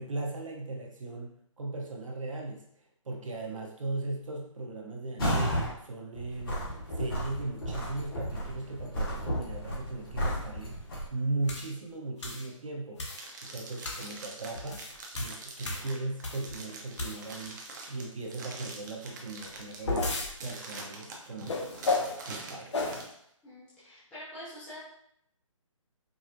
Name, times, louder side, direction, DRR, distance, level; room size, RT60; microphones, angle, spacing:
voice 1, 0.0-2.7 3.0-6.7 7.0-10.8 11.1-13.1 13.4-14.9 15.1-17.6 17.9-21.6 22.2-22.8, right 2 dB, 70° right, 1 dB, 0.8 m, -37 dB
sound 1, 5.2-5.7 6.1-11.1, equal, 40° left, 1.2 m, -32 dB
sound 2, 11.5-11.7 12.2-12.5 13.0-13.3 13.8-14.1 14.6-16.5 16.9-17.5 19.4-20.3 21.5-22.2 22.7-23.0, left 3 dB, 60° left, 0.8 m, -33 dB
sound 3, 13.1-23.1, right 3 dB, 35° right, 0.6 m, -45 dB
voice 2, 23.4-24.8, equal, 5° left, -12 dB, 0.5 m, -45 dB
4.8 x 2.0 x 2.5 m, 0.71 s
figure-of-eight pair, 150°, 17 cm